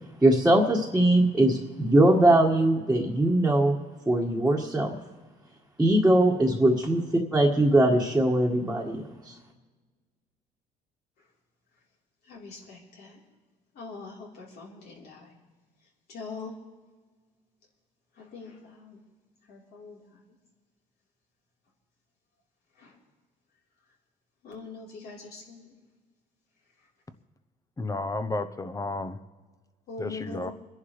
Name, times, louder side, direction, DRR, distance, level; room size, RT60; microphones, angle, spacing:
voice 1, 0.2-3.7 4.1-4.9 5.8-7.0 7.3-9.3, right 1 dB, 5° right, 1.7 m, -21 dB
voice 2, 12.2-13.2 13.7-15.3 16.1-16.5 18.1-19.0 19.5-20.4 22.8-23.0 24.4-25.8 26.8-26.9 29.9-30.5, left 3 dB, 65° left, 3.8 m, -43 dB
voice 3, 27.8-29.2 30.0-30.5, left 2 dB, 20° left, 0.8 m, -32 dB
26.5 x 11.0 x 3.2 m
cardioid pair, 110°, 17 cm